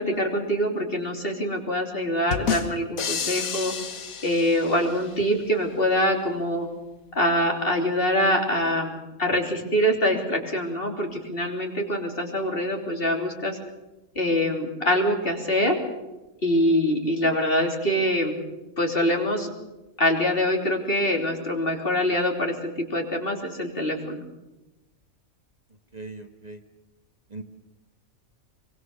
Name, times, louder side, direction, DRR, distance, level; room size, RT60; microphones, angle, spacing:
voice 1, 0.0-3.7 4.2-6.7 7.2-13.6 14.2-15.8 16.4-18.4 18.8-19.5 20.0-24.2, equal, 40° left, 2 dB, 3.5 m, -24 dB
sound 1, 2.3-5.1, left 6 dB, 85° left, 1.8 m, -30 dB
voice 2, 25.9-26.6 27.3-27.4, right 3 dB, 30° right, 5 dB, 1.5 m, -39 dB
24.0 x 24.0 x 6.6 m, 1.1 s
omnidirectional pair, 1.4 m